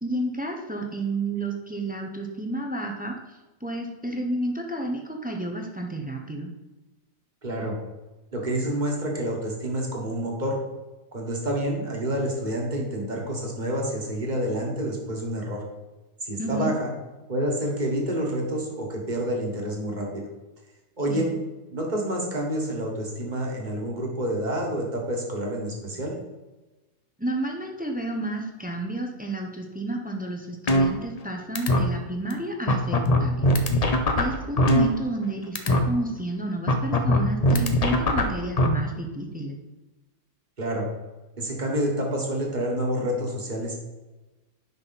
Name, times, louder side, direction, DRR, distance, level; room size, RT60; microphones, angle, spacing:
voice 1, 0.0-6.5 16.4-16.7 21.1-21.3 27.2-33.8 34.2-39.6, right 2 dB, 10° right, 2 dB, 0.5 m, -31 dB
voice 2, 7.4-7.7 8.3-10.6 11.1-15.6 16.2-16.9 17.3-20.3 21.0-21.3 21.7-26.2 40.6-40.9 41.4-43.7, right 1 dB, 30° right, 0 dB, 1.6 m, -28 dB
sound 1, 30.7-31.3 31.6-31.8 32.3-32.4 32.7-35.3 35.6-35.8 36.7-38.7, left 1 dB, 50° left, 0.4 m, -21 dB
9.7 x 5.6 x 4.1 m, 1.1 s
omnidirectional pair, 1.8 m